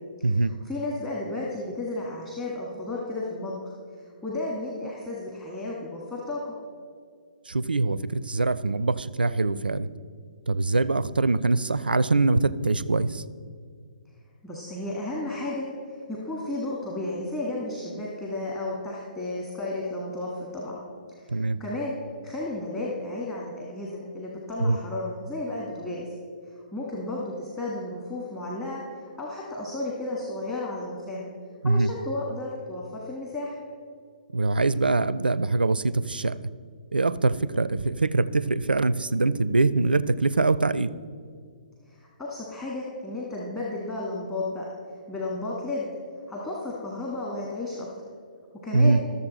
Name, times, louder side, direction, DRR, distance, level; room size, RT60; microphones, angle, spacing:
voice 1, 0.2-3.7 4.2-6.5 14.4-20.8 21.2-21.9 22.2-26.0 26.7-28.8 29.2-31.3 31.6-33.5 41.9-44.6 45.1-45.9 46.3-47.9 48.6-49.0, left 2 dB, 15° left, -4 dB, 1.5 m, -33 dB
voice 2, 7.5-9.9 10.5-13.2 21.3-21.6 24.6-24.8 31.6-31.9 34.3-36.3 36.9-40.9 48.7-49.0, right 3 dB, 80° right, 16 dB, 0.4 m, -23 dB
13.5 x 7.0 x 4.1 m, 2.1 s
figure-of-eight pair, 130°, 5 cm